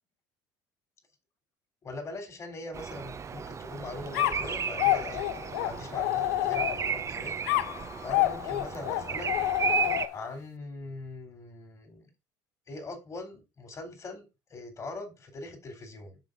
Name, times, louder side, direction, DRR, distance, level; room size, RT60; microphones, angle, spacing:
voice 1, 1.8-7.4 8.0-9.3 10.1-12.1 12.7-14.3 14.5-16.2, left 2 dB, 35° left, 6 dB, 3.5 m, -41 dB
Bird vocalization bird call bird song, 2.7-10.1, right 7 dB, 35° right, 0.8 m, -34 dB
sound 1, 4.1-7.0 7.5-10.3, left 15 dB, 85° left, 0.5 m, -29 dB
6.9 x 5.6 x 3.9 m, 0.25 s
supercardioid pair, 80°, 9 cm